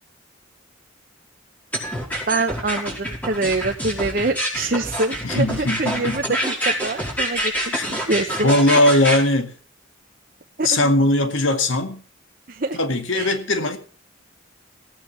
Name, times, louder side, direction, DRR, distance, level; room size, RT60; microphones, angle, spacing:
sound 1, 1.7-9.2, right 1 dB, 10° left, 4.9 m, -26 dB
voice 1, 2.3-7.7 8.1-8.5 10.6-10.9 12.5-12.8 13.1-13.4, right 2 dB, 45° right, 0.9 m, -25 dB
voice 2, 5.2-6.2 7.7-7.9 8.4-9.5 10.6-12.0 12.7-13.8, left 1 dB, 80° left, 2.1 m, -19 dB
16.5 x 8.9 x 6.8 m
head